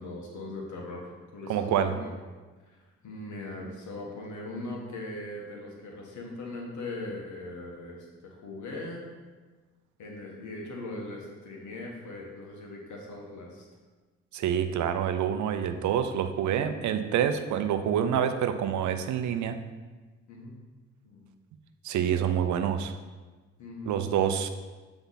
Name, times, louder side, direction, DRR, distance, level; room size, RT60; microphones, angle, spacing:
voice 1, 0.0-1.7 2.0-2.2 2.7-9.0 10.0-13.7 20.3-20.5 21.0-21.3 23.6-24.0, left 2 dB, 75° left, -1 dB, 1.5 m, -40 dB
voice 2, 1.5-1.9 14.3-19.6 21.8-22.9 23.9-24.5, right 9 dB, 70° right, 9 dB, 0.6 m, -27 dB
8.0 x 3.5 x 4.1 m, 1.3 s
cardioid pair, 90°, 30 cm